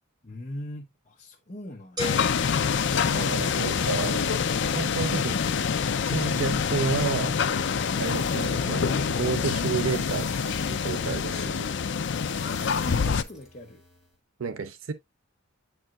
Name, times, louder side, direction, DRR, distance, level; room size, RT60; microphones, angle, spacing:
voice 1, 0.2-2.2 6.4-6.8 12.4-13.8, left 1 dB, 35° left, 0.9 m, -41 dB
sound 1, 2.0-13.2, left 6 dB, 60° left, 0.5 m, -26 dB
sound 2, 2.0-3.8, equal, 20° right, 1.9 m, -38 dB
voice 2, 3.1-5.4 6.0-7.4 8.0-11.7 14.4-14.9, right 5 dB, 75° right, 0.6 m, -31 dB
sound 3, 7.8-14.2, left 1 dB, 5° right, 1.9 m, -50 dB
8.7 x 4.5 x 2.4 m
head